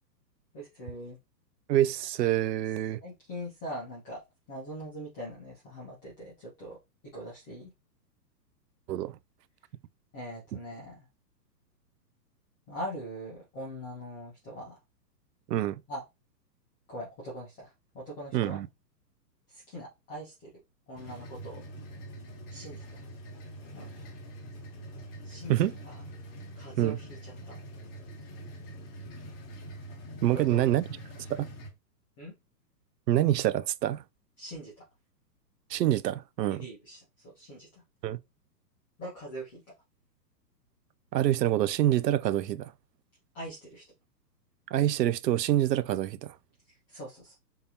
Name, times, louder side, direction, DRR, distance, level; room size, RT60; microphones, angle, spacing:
voice 1, 0.5-1.2 3.0-4.2 4.5-6.8 7.1-7.7 10.1-11.0 12.7-14.8 15.9-16.0 16.9-18.6 19.5-20.5 20.9-21.6 22.5-23.0 23.7-24.0 25.2-25.9 26.5-27.6 30.3-30.7 32.2-32.3 34.4-34.8 36.5-37.8 39.0-39.6 43.3-43.8 46.9-47.3, equal, 10° left, 0.5 m, -42 dB
voice 2, 1.7-3.0 8.9-9.2 15.5-15.8 18.3-18.7 25.5-25.7 26.8-27.0 30.2-30.8 31.3-31.5 33.1-34.0 35.7-36.7 38.0-38.2 41.1-42.7 44.7-46.3, right 13 dB, 75° right, 0.6 m, -26 dB
sound 1, 21.0-31.7, right 1 dB, 35° left, 1.0 m, -44 dB
3.7 x 2.6 x 2.8 m
hypercardioid pair, 150°, 50 cm